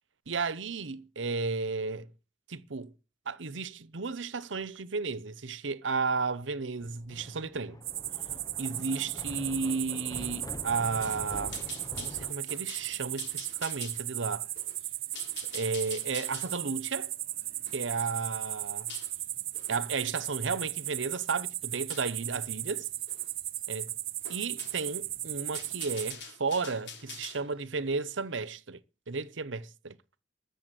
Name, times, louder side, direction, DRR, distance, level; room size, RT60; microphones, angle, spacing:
voice 1, 0.3-2.1 2.5-2.9 3.3-7.8 8.6-11.6 12.0-14.5 15.5-17.1 17.7-18.9 19.7-22.9 23.7-23.9 24.3-28.8 29.1-30.0, right 4 dB, 90° right, 0.9 m, -33 dB
Thunder, 6.8-12.3, left 1 dB, 20° left, 0.7 m, -45 dB
sound 1, 7.8-26.1, right 15 dB, 50° right, 0.6 m, -36 dB
sound 2, 11.0-19.1 19.5-19.8 20.3-21.0 21.9-22.2 23.1-23.3 23.6-23.7 24.2-25.0 25.4-27.4, left 6 dB, 65° left, 3.8 m, -47 dB
14.0 x 7.3 x 9.0 m
head